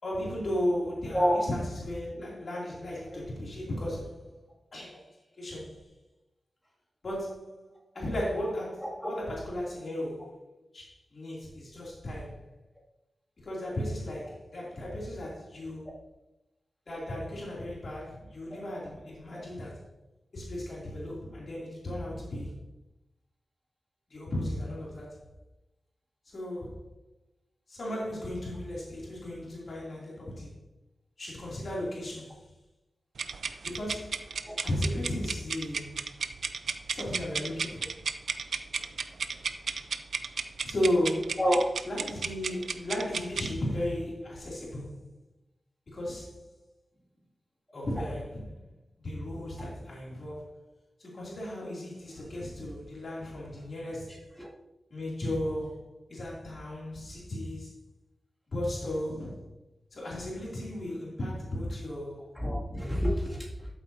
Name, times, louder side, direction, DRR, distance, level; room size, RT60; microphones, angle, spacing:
voice 1, 0.0-4.4 4.7-5.9 7.0-7.7 7.9-10.4 10.7-12.5 13.4-16.0 16.9-19.8 20.3-22.5 24.1-25.1 26.3-26.9 27.7-30.5 31.2-32.5 33.6-36.0 36.9-37.9 38.3-38.4 40.6-41.4 41.9-45.0 45.9-46.5 47.7-48.6 49.0-50.5 51.0-54.3 54.9-57.8 58.5-59.4 59.9-62.2, left 1 dB, 55° left, -5 dB, 2.8 m, -35 dB
sound 1, 33.2-43.5, right 5 dB, 80° right, 0.4 m, -34 dB
voice 2, 38.7-39.4 41.4-41.6 49.6-49.7 54.1-54.5 62.3-63.7, equal, 5° left, -4 dB, 2.4 m, -29 dB
12.5 x 7.8 x 2.8 m, 0.96 s
wide cardioid pair, 120°, 0 cm